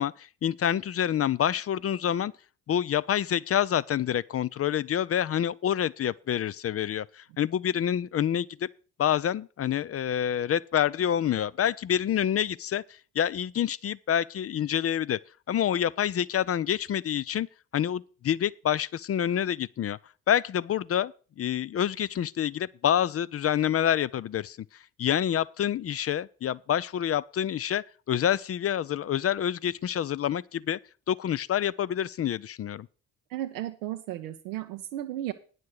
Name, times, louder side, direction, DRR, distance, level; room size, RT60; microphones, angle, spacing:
voice 1, 0.0-2.3 2.7-8.7 9.0-12.8 13.2-15.2 15.5-17.5 17.7-20.0 20.3-24.6 25.0-30.8 31.1-32.9, left 10 dB, 35° left, 0.4 m, -27 dB
voice 2, 33.3-35.3, right 13 dB, 85° right, 0.7 m, -34 dB
9.4 x 6.6 x 6.4 m
hypercardioid pair, 40°, 47 cm